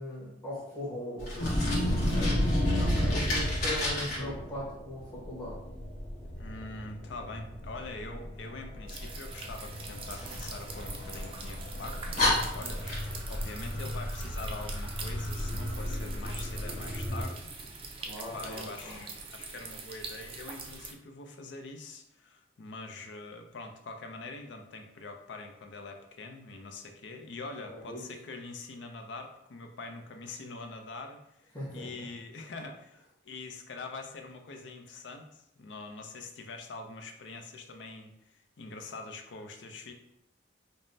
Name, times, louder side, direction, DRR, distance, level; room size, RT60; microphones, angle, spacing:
voice 1, 0.0-2.5 3.0-5.6 13.7-13.8 18.0-19.0 27.7-28.0 31.5-31.9, equal, 15° left, -12 dB, 1.2 m, -39 dB
Fire, 1.2-4.2 10.1-11.3 11.8-11.9 12.2-13.4, left 1 dB, 50° left, 1.1 m, -32 dB
sound 1, 1.4-17.2, equal, 35° left, 0.7 m, -33 dB
voice 2, 2.8-3.2 6.4-17.5 17.8-39.9, left 3 dB, 65° left, 5 dB, 0.5 m, -44 dB
sound 2, 8.9-20.9, right 4 dB, 30° right, 0.4 m, -44 dB
5.2 x 2.0 x 2.6 m, 0.80 s
head